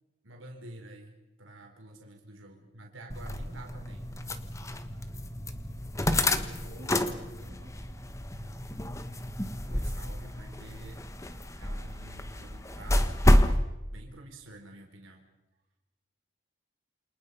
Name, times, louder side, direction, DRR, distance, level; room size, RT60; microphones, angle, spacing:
voice 1, 0.2-4.1 9.6-11.0 11.6-13.1 13.9-15.2, right 1 dB, 85° right, 2 dB, 4.4 m, -49 dB
sound 1, 3.1-13.6, left 1 dB, 15° left, 1.3 m, -29 dB
voice 2, 6.1-7.7, right 1 dB, 50° right, 3 dB, 3.7 m, -52 dB
29.0 x 26.5 x 5.5 m, 1.0 s
head